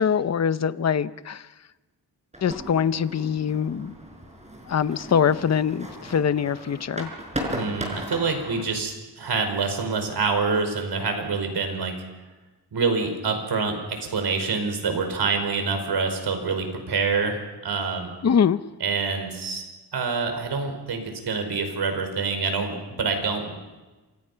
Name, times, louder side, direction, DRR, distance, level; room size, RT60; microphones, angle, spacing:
voice 1, 0.0-1.4 2.4-3.9 4.7-7.1 18.2-18.6, left 7 dB, 40° left, 14 dB, 0.7 m, -23 dB
sound 1, 2.3-8.6, equal, 15° right, 6.4 m, -36 dB
voice 2, 7.5-11.9 12.7-17.4 17.6-18.1 18.8-19.6 19.9-23.5, right 4 dB, 75° right, 6 dB, 5.3 m, -26 dB
28.0 x 26.0 x 5.8 m, 1.2 s
wide cardioid pair, 115°, 40 cm